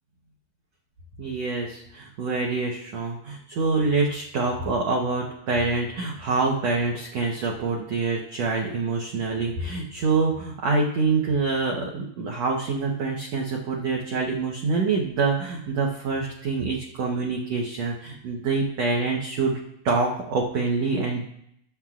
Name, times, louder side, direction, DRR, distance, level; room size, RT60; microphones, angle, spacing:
voice 1, 1.2-19.6 19.8-21.3, right 3 dB, 75° right, -2 dB, 1.5 m, -26 dB
20.0 x 7.5 x 2.5 m, 0.74 s
omnidirectional pair, 4.6 m